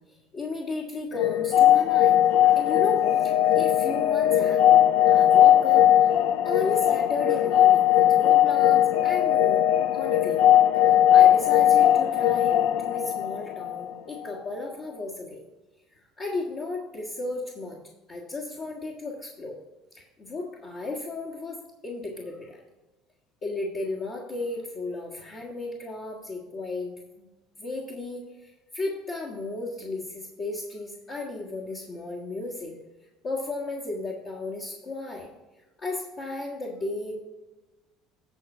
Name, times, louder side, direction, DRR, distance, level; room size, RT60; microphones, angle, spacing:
voice 1, 0.0-6.2 6.4-9.6 9.9-10.5 10.8-15.4 15.9-17.8 18.1-19.6 19.9-22.6 23.4-27.3 27.6-32.7 33.2-35.3 35.8-37.1, left 2 dB, 50° left, -4 dB, 1.6 m, -34 dB
sound 1, 1.1-13.9, left 11 dB, 70° left, 0.4 m, -19 dB
9.9 x 4.4 x 6.0 m, 1.1 s
supercardioid pair, 85°, 0 cm